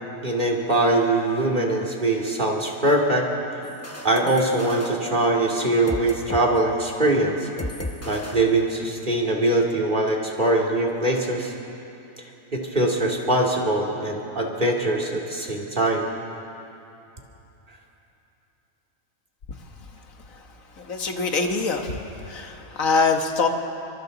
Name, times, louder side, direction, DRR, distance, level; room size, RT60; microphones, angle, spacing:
voice 1, 0.2-3.3 4.0-7.5 8.1-11.5 12.5-16.1, right 2 dB, 35° right, -1 dB, 2.6 m, -22 dB
sound 1, 3.6-6.5 6.7-7.0 7.6-9.1, left 1 dB, 15° left, 0.8 m, -36 dB
voice 2, 20.8-22.0 22.3-23.5, left 4 dB, 80° left, 4 dB, 1.8 m, -23 dB
30.0 x 24.5 x 4.0 m, 2.9 s
omnidirectional pair, 1.4 m